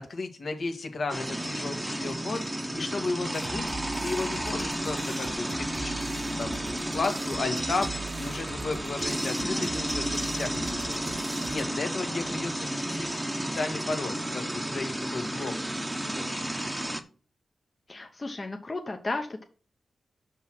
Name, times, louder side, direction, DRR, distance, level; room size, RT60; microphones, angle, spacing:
voice 1, 0.0-2.4 2.7-3.7 4.0-6.6 6.9-13.1 13.4-15.5 16.0-16.5, left 3 dB, 60° left, 5 dB, 1.6 m, -34 dB
sound 1, 1.1-17.0, right 1 dB, 10° right, 1.0 m, -32 dB
sound 2, 3.3-11.6, right 4 dB, 55° right, 0.7 m, -42 dB
voice 2, 17.9-19.4, left 2 dB, 30° left, 3 dB, 0.9 m, -34 dB
6.2 x 5.5 x 5.8 m, 0.37 s
wide cardioid pair, 90°, 0 cm